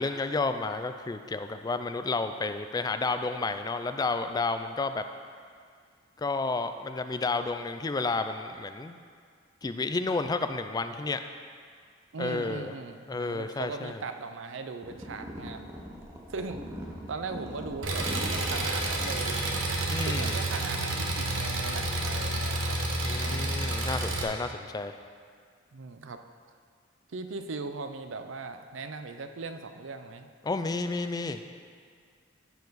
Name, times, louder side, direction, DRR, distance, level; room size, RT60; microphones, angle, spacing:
voice 1, 0.0-5.0 6.2-9.0 9.6-11.2 12.2-12.7 13.1-14.0 19.9-20.4 23.0-25.0 30.4-31.4, left 3 dB, 20° left, 8 dB, 0.3 m, -31 dB
voice 2, 12.1-15.6 16.3-16.6 17.1-19.4 20.0-22.8 23.2-23.7 25.7-26.2 27.1-30.3, right 4 dB, 70° right, 8 dB, 0.5 m, -39 dB
sound 1, 14.8-19.1, equal, 15° right, 0.8 m, -41 dB
Engine, 17.8-24.2, right 2 dB, 90° right, 1.1 m, -30 dB
13.5 x 4.7 x 4.0 m, 2.1 s
head